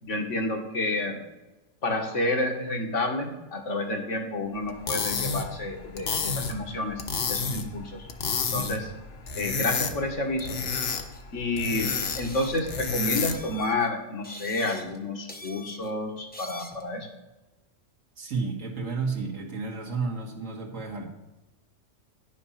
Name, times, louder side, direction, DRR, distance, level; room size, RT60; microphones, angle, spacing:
voice 1, 0.0-1.2 1.8-7.0 7.3-8.1 8.5-8.9 9.3-10.6 11.3-11.9 12.2-17.1, left 2 dB, 70° left, 2 dB, 1.7 m, -29 dB
sound 1, 4.7-13.6, left 5 dB, 55° left, 1.1 m, -31 dB
sound 2, 11.1-11.2 11.7-12.8 13.2-13.9 14.2-15.0 15.3-15.9 16.3-16.9, left 1 dB, 10° left, 0.6 m, -44 dB
voice 2, 18.2-21.1, right 4 dB, 80° right, 0 dB, 2.0 m, -31 dB
10.0 x 6.2 x 5.7 m, 1.1 s
omnidirectional pair, 1.3 m